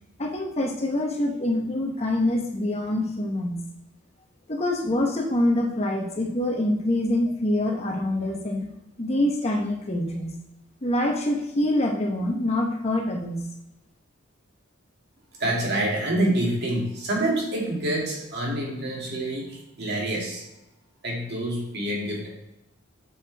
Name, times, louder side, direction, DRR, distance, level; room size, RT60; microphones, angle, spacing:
voice 1, 0.2-3.6 4.5-8.7 9.0-10.3 10.8-13.4, left 1 dB, 30° left, 1 dB, 1.0 m, -25 dB
voice 2, 15.4-20.4 21.0-22.3, right 1 dB, 55° right, -3 dB, 2.4 m, -27 dB
8.2 x 6.5 x 3.4 m, 0.89 s
head